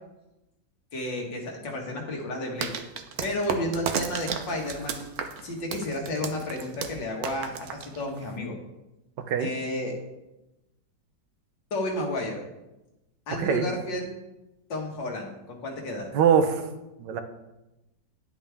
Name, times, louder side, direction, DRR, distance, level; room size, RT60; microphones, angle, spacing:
voice 1, 0.9-2.7 3.2-5.0 5.4-8.5 9.4-10.0 11.7-12.4 13.3-14.1 14.7-16.1, left 1 dB, 80° left, 0 dB, 2.3 m, -32 dB
sound 1, 2.6-8.4, right 6 dB, 65° right, 1.2 m, -34 dB
voice 2, 9.2-9.5 13.3-13.6 16.1-16.6 17.0-17.2, right 7 dB, 80° right, 8 dB, 1.5 m, -22 dB
10.5 x 8.4 x 3.5 m, 0.97 s
omnidirectional pair, 1.9 m